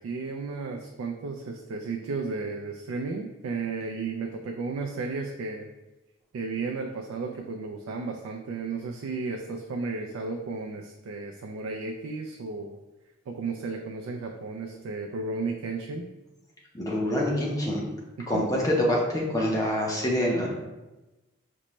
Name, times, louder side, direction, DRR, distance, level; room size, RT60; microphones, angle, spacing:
voice 1, 0.0-5.7 6.3-12.8 13.3-16.1 18.2-18.4, right 4 dB, 90° right, 2 dB, 0.3 m, -33 dB
voice 2, 16.7-17.8 18.3-20.5, left 1 dB, 15° left, -3 dB, 0.6 m, -26 dB
5.1 x 2.1 x 3.0 m, 1.1 s
head